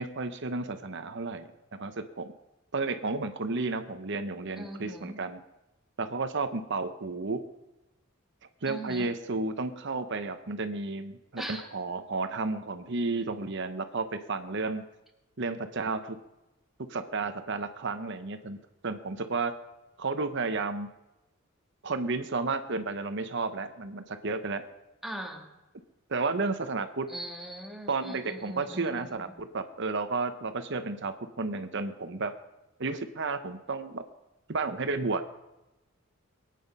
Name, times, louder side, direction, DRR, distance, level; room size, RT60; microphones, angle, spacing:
voice 1, 0.0-2.3 2.7-5.4 6.0-7.4 8.6-14.8 15.4-16.2 16.9-18.6 18.8-19.6 20.0-20.9 21.8-24.7 26.1-27.1 27.9-32.3 32.8-34.0 34.5-35.2, right 3 dB, 60° right, 9 dB, 0.9 m, -32 dB
voice 2, 4.6-5.2 8.7-9.1 11.4-11.7 25.0-25.5 27.1-29.3, right 1 dB, ahead, 1 dB, 1.9 m, -40 dB
22.0 x 9.3 x 5.4 m, 1.0 s
head